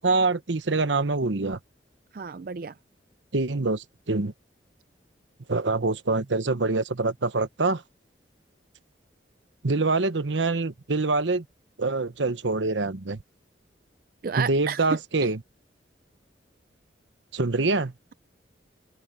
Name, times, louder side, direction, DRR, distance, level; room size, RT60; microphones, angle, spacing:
voice 1, 0.0-1.6 3.3-4.3 5.5-7.8 9.6-11.4 11.8-13.2 14.4-15.4 17.3-17.9, right 3 dB, 80° right, 1.1 m, -25 dB
voice 2, 2.1-2.7 14.2-15.0, right 6 dB, 50° right, 0.4 m, -31 dB
open air
head